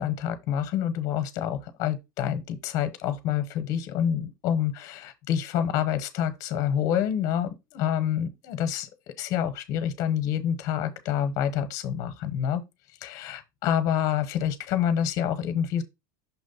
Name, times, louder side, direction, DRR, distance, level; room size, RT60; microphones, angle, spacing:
voice 1, 0.0-8.9 9.2-12.6 13.0-15.8, left 9 dB, 30° left, 0.9 m, -27 dB
5.9 x 3.1 x 5.4 m
supercardioid pair, 180°, 11 cm